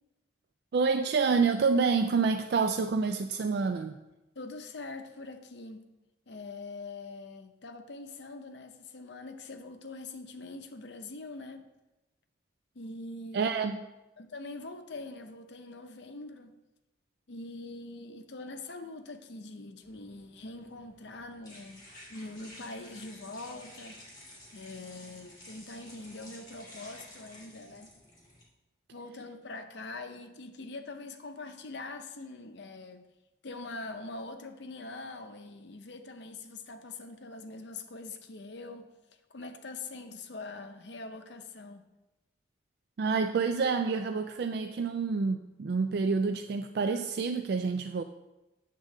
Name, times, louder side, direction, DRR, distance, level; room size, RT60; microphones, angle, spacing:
voice 1, 0.7-4.0 13.3-13.8 43.0-48.0, right 4 dB, 55° right, 0.3 m, -28 dB
voice 2, 4.4-5.8 6.3-11.7 12.7-13.7 14.2-16.5 17.3-24.0 24.5-27.9 28.9-33.0 33.4-38.9 39.3-41.9, left 3 dB, 60° left, 0.7 m, -43 dB
sound 1, 19.8-28.4, left 1 dB, 20° left, 2.2 m, -52 dB
8.8 x 3.7 x 6.4 m
head